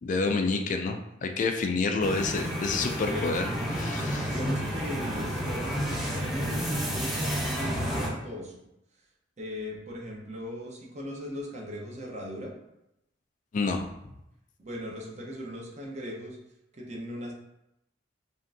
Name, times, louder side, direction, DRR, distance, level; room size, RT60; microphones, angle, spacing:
voice 1, 0.0-3.4 3.7-4.3 13.5-13.9, left 3 dB, 45° left, 5 dB, 0.3 m, -28 dB
sound 1, 2.0-8.1, equal, ahead, 0.7 m, -31 dB
voice 2, 2.8-3.4 4.3-8.6 9.4-12.5 14.6-16.4 16.7-17.3, equal, 40° right, -2 dB, 0.9 m, -39 dB
5.1 x 2.5 x 2.6 m, 0.85 s
head